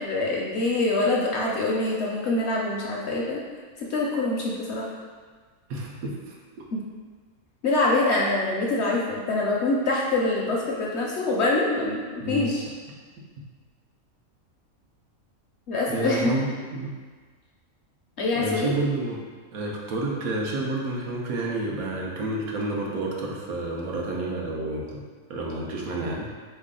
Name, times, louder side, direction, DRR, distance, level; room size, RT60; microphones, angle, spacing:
voice 1, 0.0-3.4 3.8-4.9 6.7-6.8 7.6-12.7 15.7-16.3 18.2-18.7, left 2 dB, 60° left, -3 dB, 0.7 m, -25 dB
voice 2, 5.7-6.3 12.2-12.4 15.9-16.5 16.7-16.9 18.4-19.2 19.5-25.0 25.3-26.3, right 2 dB, 85° right, -2 dB, 1.2 m, -29 dB
4.0 x 3.2 x 3.7 m, 1.5 s
omnidirectional pair, 1.5 m